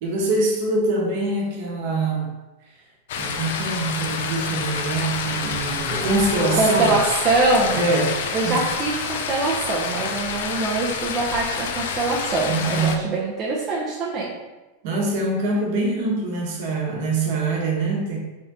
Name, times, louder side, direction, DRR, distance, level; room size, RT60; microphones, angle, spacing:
voice 1, 0.0-2.3 3.2-7.0 7.7-8.6 12.5-13.1 14.8-18.2, right 2 dB, 55° right, -2 dB, 1.0 m, -24 dB
sound 1, 3.1-13.0, left 6 dB, 75° left, 0.4 m, -28 dB
voice 2, 6.5-7.8 8.3-14.4, right 3 dB, 25° right, -5 dB, 0.5 m, -23 dB
3.5 x 2.7 x 3.5 m, 1.1 s
supercardioid pair, 150°, 0 cm